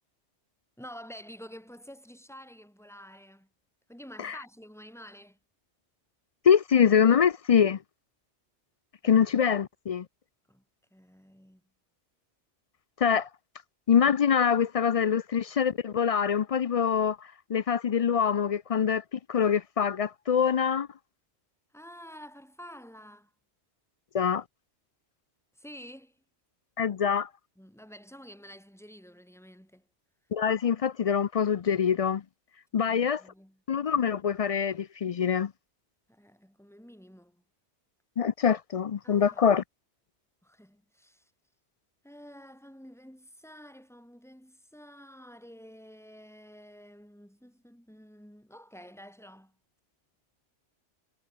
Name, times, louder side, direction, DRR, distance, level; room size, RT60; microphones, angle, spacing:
voice 1, 0.8-3.5 3.9-5.4 10.5-10.6 10.9-11.6 21.7-23.3 25.6-26.2 27.6-29.9 32.7-33.6 36.1-37.4 39.0-39.6 40.4-41.3 42.0-49.6, equal, ahead, 5.1 m, -49 dB
voice 2, 6.4-7.8 9.0-10.1 13.0-13.3 13.9-17.2 17.5-20.9 24.1-24.4 26.8-27.3 30.3-32.2 32.7-33.2 33.7-35.5 38.2-39.6, left 7 dB, 55° left, 0.4 m, -24 dB
omnidirectional pair, 1.2 m